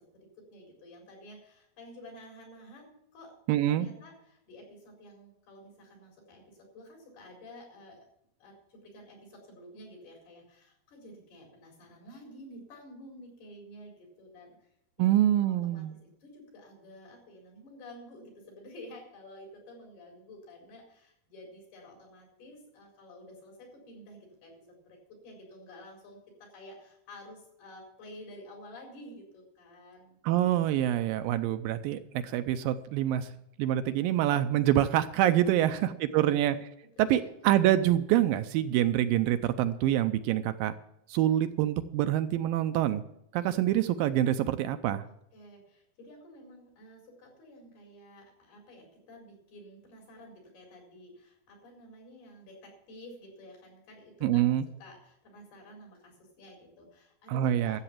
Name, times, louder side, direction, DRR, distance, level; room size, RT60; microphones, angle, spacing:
voice 1, 0.1-3.4 3.7-8.0 8.4-14.7 15.0-24.5 24.9-30.2 35.6-36.6 36.9-37.5 45.3-54.5 54.8-57.8, left 1 dB, 85° left, 0 dB, 6.4 m, -51 dB
voice 2, 3.5-3.9 15.0-15.9 30.2-33.3 33.6-36.6 37.0-40.7 41.1-43.0 43.3-45.0 54.2-54.7 57.3-57.8, right 12 dB, 80° right, 10 dB, 2.2 m, -26 dB
13.0 x 8.0 x 7.3 m, 0.76 s
omnidirectional pair, 4.3 m